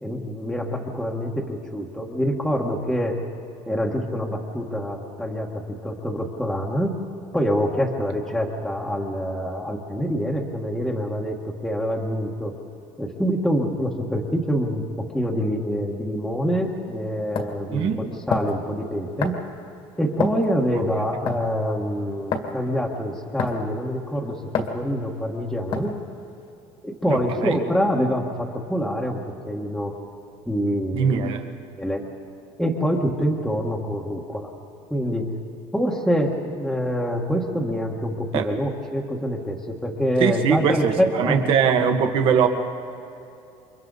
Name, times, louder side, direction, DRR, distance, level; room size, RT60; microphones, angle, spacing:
voice 1, 0.0-3.2 3.7-7.0 7.3-12.5 13.0-19.4 20.0-25.9 26.8-29.2 29.5-29.9 30.4-31.2 31.8-32.0 32.6-34.5 34.9-35.3 35.7-41.4, equal, ahead, -3 dB, 1.5 m, -25 dB
sound 1, 16.6-16.7 17.3-17.6 18.3-18.6 19.2-19.5 20.2-20.5 21.3-21.5 22.3-22.5 23.4-23.7 24.5-24.8 25.7-26.0, left 5 dB, 50° left, 2.0 m, -27 dB
voice 2, 17.7-18.0 20.7-20.8 27.1-27.6 30.9-31.4 38.3-38.5 40.2-42.5, right 7 dB, 50° right, 5 dB, 1.8 m, -21 dB
29.0 x 24.5 x 4.0 m, 2.7 s
cardioid pair, 155°, 11 cm